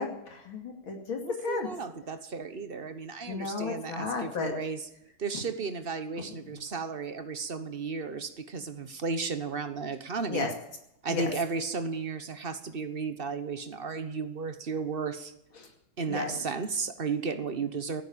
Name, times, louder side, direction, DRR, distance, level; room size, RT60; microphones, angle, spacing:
voice 1, 0.0-1.7 3.3-4.5 10.3-10.5 11.1-11.3 16.1-16.3, left 4 dB, 75° left, 1 dB, 3.3 m, -33 dB
voice 2, 1.2-4.9 5.2-10.5 11.0-15.3 16.0-18.0, right 5 dB, 40° right, 9 dB, 0.9 m, -34 dB
16.5 x 9.5 x 8.6 m, 0.80 s
omnidirectional pair, 2.2 m